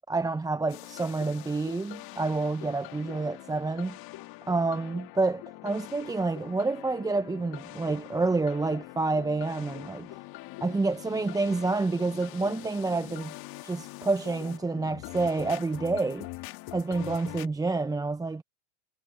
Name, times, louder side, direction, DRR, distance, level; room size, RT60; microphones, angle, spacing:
voice 1, 0.1-4.0 4.5-10.1 10.6-13.3 13.6-16.3 16.7-18.4, right 3 dB, 10° right, 0.7 m, -28 dB
sound 1, 0.7-17.5, left 20 dB, 55° left, 1.6 m, -44 dB
hypercardioid pair, 100°, 45 cm